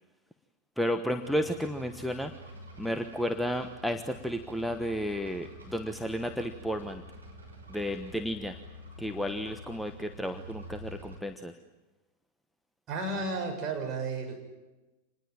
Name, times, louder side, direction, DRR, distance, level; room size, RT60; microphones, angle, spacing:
voice 1, 0.8-2.4 2.8-7.0 7.7-8.6 9.0-11.6, equal, ahead, 8 dB, 1.2 m, -32 dB
sound 1, 1.2-11.2, equal, 80° right, 6.2 m, -48 dB
voice 2, 12.9-14.4, right 3 dB, 30° right, 3 dB, 7.1 m, -33 dB
27.0 x 20.5 x 9.1 m, 1.1 s
figure-of-eight pair, 90°, 0 cm